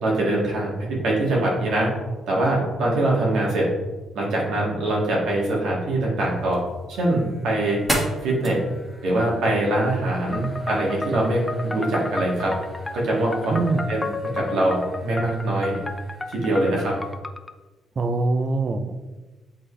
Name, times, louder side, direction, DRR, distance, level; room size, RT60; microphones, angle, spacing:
voice 1, 0.0-1.9 2.3-3.7 4.1-6.6 6.9-7.8 8.2-8.6 9.0-12.5 12.9-13.6 13.9-15.8 16.3-17.0, right 1 dB, 80° right, -3 dB, 1.9 m, -23 dB
sound 1, 6.2-17.2, equal, 10° right, 1.7 m, -37 dB
sound 2, 10.3-17.5, left 3 dB, 15° left, 0.4 m, -33 dB
voice 2, 13.5-13.8 18.0-18.9, right 3 dB, 40° right, 9 dB, 0.5 m, -23 dB
7.6 x 4.0 x 3.2 m, 1.2 s
cardioid pair, 95°, 0 cm